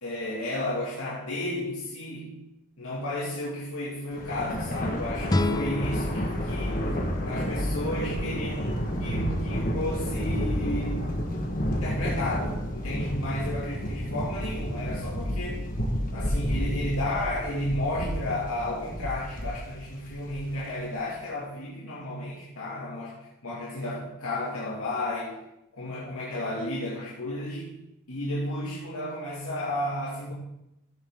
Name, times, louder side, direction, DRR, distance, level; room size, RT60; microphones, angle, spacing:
voice 1, 0.0-2.4 2.8-11.2 11.7-15.7 16.1-25.4 25.7-27.8 28.1-30.3, left 1 dB, 80° left, -7 dB, 2.4 m, -33 dB
Thunder, 4.1-20.7, equal, 40° left, 1.5 m, -31 dB
sound 1, 5.3-8.3, left 2 dB, 15° left, 0.4 m, -31 dB
14.5 x 7.0 x 3.8 m, 0.85 s
head